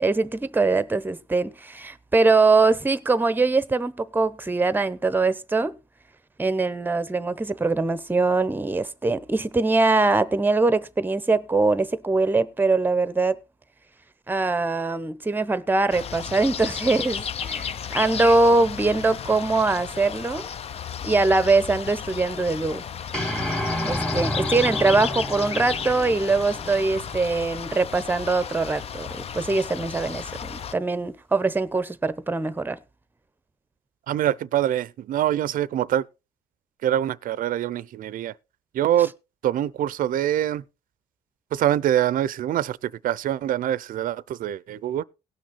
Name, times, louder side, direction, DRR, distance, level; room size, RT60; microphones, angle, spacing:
voice 1, 0.0-5.7 6.4-13.4 14.3-20.4 21.0-22.8 23.8-32.8, right 3 dB, 10° right, 0.8 m, -22 dB
sound 1, 15.9-30.7, left 7 dB, 35° left, 0.5 m, -34 dB
sound 2, 23.1-27.5, left 1 dB, 5° left, 1.7 m, -30 dB
voice 2, 34.1-36.1 36.8-38.3 38.7-39.1 39.4-40.6 41.5-45.0, right 11 dB, 55° right, 0.6 m, -24 dB
18.0 x 6.2 x 4.1 m
cardioid pair, 110°, 17 cm